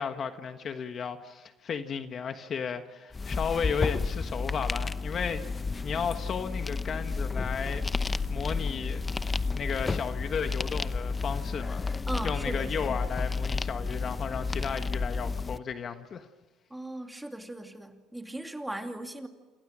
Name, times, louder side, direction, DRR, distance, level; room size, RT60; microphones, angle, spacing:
voice 1, 0.0-7.8 8.3-9.0 9.5-11.8 12.2-16.3, left 6 dB, 40° left, 1.4 m, -34 dB
sound 1, 3.1-15.6, left 4 dB, 20° left, 0.8 m, -31 dB
voice 2, 12.1-13.0 16.7-19.3, right 1 dB, 5° right, 2.5 m, -38 dB
28.5 x 28.0 x 6.3 m
cardioid pair, 115°, 0 cm